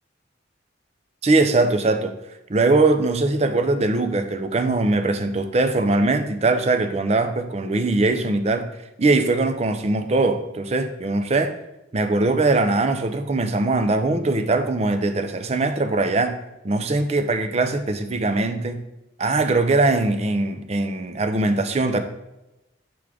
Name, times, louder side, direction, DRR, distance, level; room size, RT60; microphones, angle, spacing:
voice 1, 1.2-2.1 2.5-8.7 9.0-11.5 11.9-16.4 16.6-18.8 19.2-22.0, right 2 dB, 35° right, 8 dB, 0.5 m, -21 dB
6.0 x 3.6 x 4.9 m, 0.93 s
head